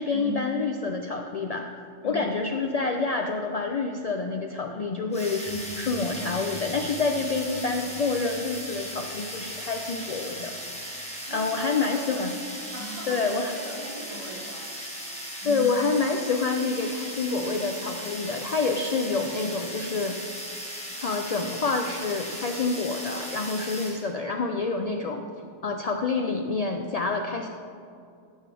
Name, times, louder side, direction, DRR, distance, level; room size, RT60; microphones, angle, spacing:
voice 1, 0.0-1.7 2.0-10.5 11.3-12.3 13.1-13.5 15.4-20.2 21.0-25.2 25.6-27.5, left 4 dB, 80° left, 4 dB, 0.3 m, -27 dB
voice 2, 2.0-2.3 11.2-11.5 11.9-12.3 12.7-14.7 15.4-15.6 24.7-24.9, right 2 dB, 30° right, -5 dB, 1.7 m, -39 dB
sound 1, 5.1-24.1, equal, 5° left, 1.2 m, -37 dB
sound 2, 5.4-11.1, equal, 30° left, 1.7 m, -44 dB
13.0 x 6.4 x 3.4 m, 2.4 s
omnidirectional pair, 1.2 m